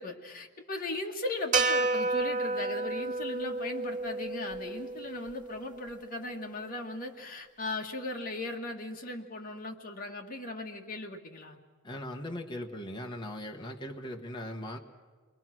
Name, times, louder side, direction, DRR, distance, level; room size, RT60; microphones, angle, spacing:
voice 1, 0.0-11.6, left 2 dB, 45° left, 1 dB, 2.0 m, -38 dB
sound 1, 1.5-5.9, right 3 dB, 40° right, 1.0 m, -31 dB
voice 2, 11.8-14.8, left 1 dB, 20° left, 2 dB, 1.4 m, -39 dB
29.0 x 22.0 x 6.2 m, 1.5 s
head